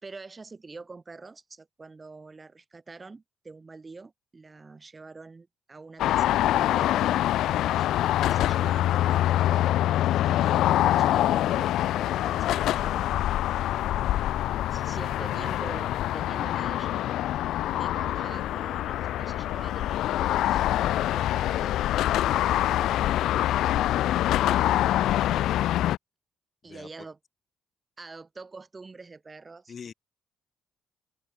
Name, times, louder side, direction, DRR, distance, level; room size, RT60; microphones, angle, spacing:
voice 1, 0.0-7.9 8.2-9.5 10.2-13.1 13.4-13.7 14.7-17.1 17.7-22.1 26.6-27.2 28.0-29.7, right 3 dB, 25° right, 2.7 m, -45 dB
sound 1, 6.0-26.0, left 13 dB, 85° left, 0.4 m, -25 dB
voice 2, 26.6-26.9 29.7-29.9, left 6 dB, 45° left, 5.4 m, -46 dB
cardioid pair, 90°, 0 cm